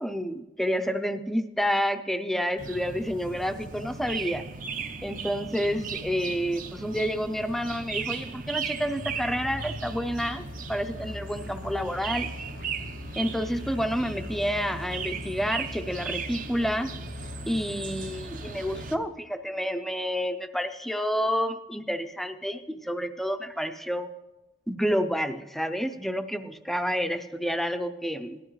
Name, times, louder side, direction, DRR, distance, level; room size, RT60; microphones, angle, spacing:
voice 1, 0.0-4.4 5.0-12.3 13.2-16.9 17.5-24.1 24.7-28.4, equal, ahead, 8 dB, 0.5 m, -29 dB
sound 1, 2.6-19.0, right 5 dB, 45° right, 0.7 m, -37 dB
Musical instrument, 9.1-19.2, left 3 dB, 85° left, 0.7 m, -43 dB
18.0 x 12.5 x 3.1 m, 1.1 s
head